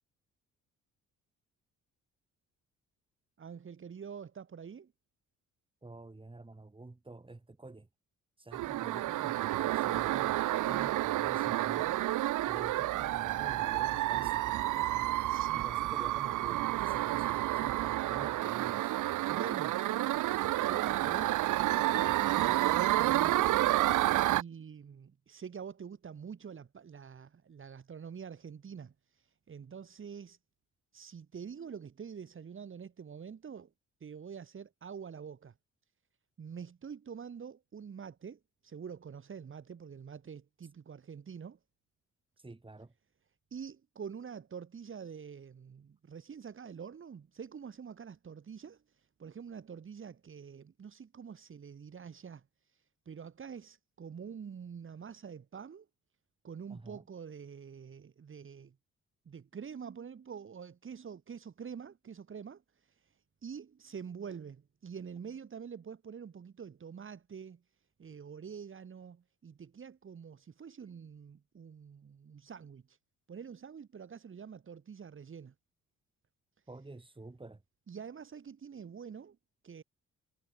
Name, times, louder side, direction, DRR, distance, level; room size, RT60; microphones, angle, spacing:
voice 1, 3.4-4.9 15.3-15.7 19.3-19.8 20.6-23.6 24.3-30.4 30.9-33.7 34.0-35.5 36.4-41.6 43.5-55.9 56.4-58.7 59.2-67.6 68.0-73.0 73.3-75.5 77.9-79.4 79.6-79.8, right 7 dB, 45° right, 2.9 m, -46 dB
voice 2, 5.8-7.9 8.4-10.4 10.7-12.0 12.5-18.9 42.4-42.9 56.7-57.1 76.7-77.6, right 2 dB, 15° right, 7.3 m, -49 dB
sound 1, 8.5-24.4, right 15 dB, 85° right, 1.9 m, -30 dB
cardioid pair, 90°, 30 cm